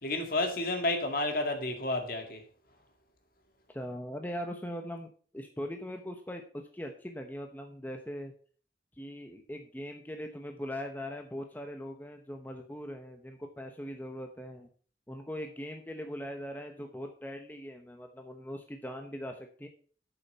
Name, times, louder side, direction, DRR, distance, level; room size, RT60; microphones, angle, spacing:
voice 1, 0.0-2.4, left 2 dB, 50° left, 2.0 m, -31 dB
voice 2, 3.7-8.3 9.0-14.7 15.1-19.7, equal, 10° left, 0.9 m, -40 dB
8.9 x 7.0 x 5.6 m
head